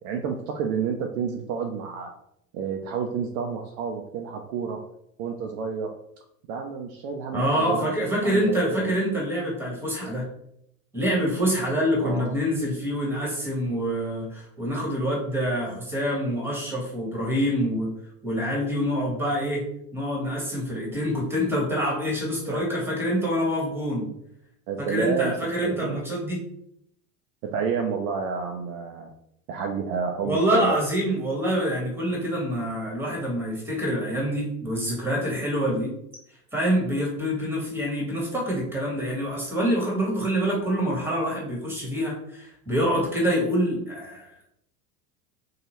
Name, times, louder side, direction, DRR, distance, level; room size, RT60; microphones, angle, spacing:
voice 1, 0.0-2.1 2.5-4.8 5.2-5.9 6.5-7.9 8.2-8.9 12.0-12.3 22.5-23.0 24.7-25.3 25.6-26.0 27.4-29.1 29.5-30.8, right 6 dB, 55° right, 3 dB, 0.5 m, -30 dB
voice 2, 7.3-10.2 10.9-17.9 18.2-19.6 19.9-24.1 24.8-26.4 30.2-35.9 36.5-44.4, equal, 5° right, -3 dB, 1.3 m, -26 dB
2.7 x 2.3 x 3.0 m, 0.74 s
hypercardioid pair, 85°, 49 cm